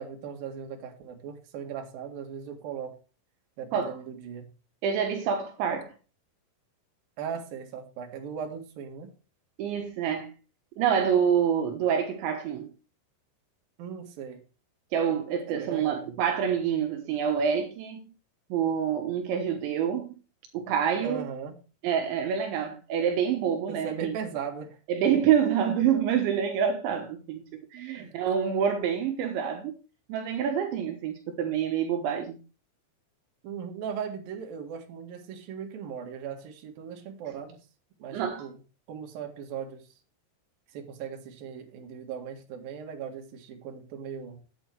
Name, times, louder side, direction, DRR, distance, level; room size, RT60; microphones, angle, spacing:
voice 1, 0.0-3.0 3.6-4.5 7.2-9.1 13.8-14.4 15.5-16.2 21.0-21.6 23.7-24.8 27.9-28.2 33.4-37.6 38.0-38.5 38.9-39.9 40.7-44.4, right 7 dB, 60° right, 3.2 m, -38 dB
voice 2, 4.8-5.9 9.6-10.3 10.8-12.7 14.9-18.0 18.5-20.1 20.5-21.3 21.8-24.1 24.9-27.4 27.7-29.8 30.1-32.4 38.1-38.5, right 8 dB, 75° right, 3.4 m, -27 dB
9.1 x 9.0 x 4.6 m
omnidirectional pair, 5.6 m